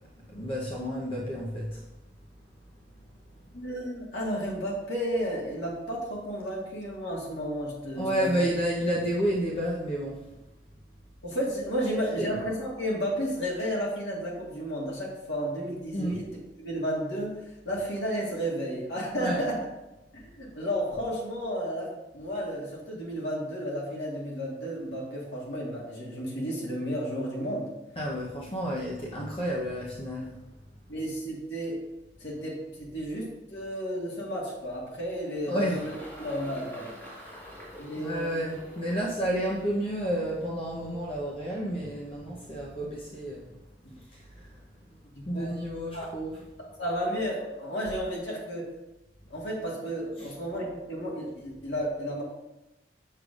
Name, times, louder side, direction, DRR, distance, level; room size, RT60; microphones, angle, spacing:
voice 1, 0.3-1.8 8.0-10.2 12.2-12.3 15.9-16.2 19.1-19.4 28.0-30.4 35.5-35.8 38.0-43.5 44.3-44.5 45.2-46.4 50.2-50.3, equal, 35° left, -4 dB, 0.8 m, -30 dB
voice 2, 3.5-8.4 11.2-16.3 16.6-19.7 20.1-21.9 22.1-27.7 30.9-31.8 32.2-36.9 37.8-38.4 43.9-44.0 45.1-45.5 45.9-46.1 46.6-48.7 49.3-52.2, equal, 85° left, -4 dB, 1.7 m, -32 dB
Engine, 34.8-41.3, equal, 15° left, 2.2 m, -47 dB
6.6 x 6.5 x 2.5 m, 0.99 s
head